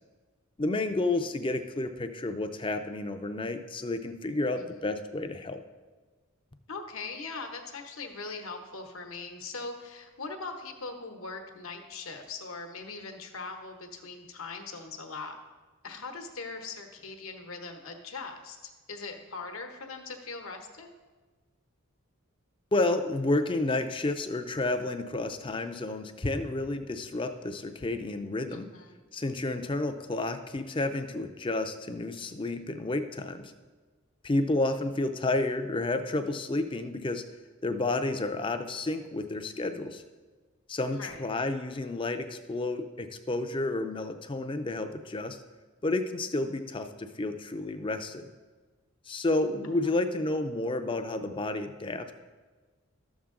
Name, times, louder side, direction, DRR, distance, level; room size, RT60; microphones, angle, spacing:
voice 1, 0.6-5.6 22.7-28.7 29.1-33.5 34.2-37.2 37.6-40.0 40.7-45.4 45.8-48.3 49.1-52.1, left 2 dB, 25° left, 8 dB, 0.5 m, -31 dB
voice 2, 6.7-15.4 15.8-18.6 18.9-20.9 28.5-29.0 34.6-34.9 40.9-41.2 49.7-50.0, left 4 dB, 75° left, 4 dB, 1.0 m, -41 dB
12.5 x 7.2 x 3.7 m, 1.4 s
head